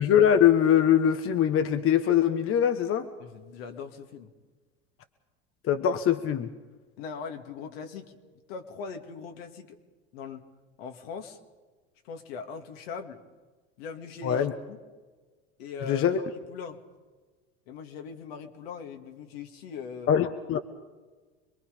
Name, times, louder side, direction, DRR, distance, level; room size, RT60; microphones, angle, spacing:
voice 1, 0.0-3.1 5.6-6.5 14.2-14.5 15.9-16.2 20.1-20.6, left 9 dB, 45° left, 8 dB, 1.3 m, -22 dB
voice 2, 3.2-4.3 7.0-8.2 8.5-9.8 10.1-10.5 10.8-11.4 12.0-13.2 13.8-14.8 15.6-16.8 17.7-20.1, left 6 dB, 75° left, 5 dB, 2.3 m, -40 dB
26.0 x 22.0 x 5.4 m, 1.3 s
hypercardioid pair, 80°, 31 cm